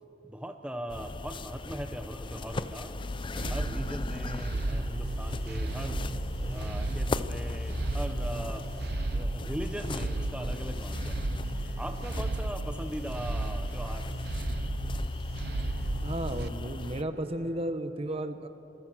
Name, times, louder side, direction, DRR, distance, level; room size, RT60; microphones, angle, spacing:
voice 1, 0.3-3.0 3.5-6.0 6.5-8.6 9.1-11.2 11.8-14.1, equal, 5° right, 6 dB, 1.0 m, -39 dB
sound 1, 0.9-17.0, left 2 dB, 30° left, 0.5 m, -38 dB
sound 2, 1.9-17.7, right 1 dB, 85° right, 4.5 m, -53 dB
sound 3, 3.4-16.5, right 2 dB, 60° right, 0.8 m, -34 dB
voice 2, 16.0-18.5, right 1 dB, 35° right, 9 dB, 1.1 m, -33 dB
26.5 x 21.5 x 6.3 m, 2.7 s
head